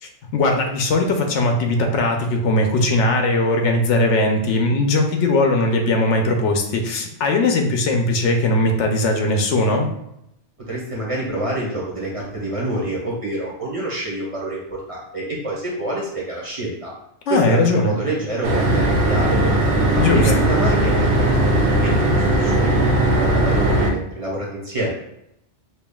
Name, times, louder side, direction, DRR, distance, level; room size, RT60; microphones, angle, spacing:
voice 1, 0.3-9.9 17.3-18.0 19.9-20.3, left 2 dB, 85° left, 3 dB, 0.9 m, -19 dB
voice 2, 10.7-16.9 17.3-19.6 20.1-24.9, right 1 dB, 30° right, -4 dB, 1.0 m, -27 dB
sound 1, 18.4-23.9, right 1 dB, 80° right, 0.9 m, -18 dB
5.4 x 2.4 x 2.2 m, 0.80 s
omnidirectional pair, 1.2 m